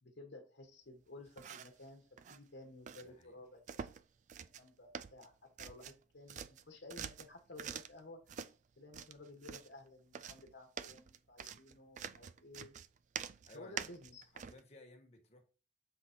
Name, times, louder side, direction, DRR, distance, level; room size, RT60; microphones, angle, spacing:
voice 1, 0.0-3.9 4.6-5.3 5.6-8.4 8.8-12.7 13.5-14.3, left 2 dB, 70° left, 1.3 m, -54 dB
sound 1, 1.3-1.8 2.2-2.4 2.9-3.0 3.7-4.0 4.3-4.7 4.9-6.0 6.3-8.0 8.3-8.5 8.9-9.7 10.1-14.6, right 7 dB, 40° right, 0.3 m, -46 dB
voice 2, 2.9-3.4 13.5-13.9 14.3-15.4, left 1 dB, 35° left, 1.4 m, -59 dB
7.5 x 3.9 x 4.4 m
head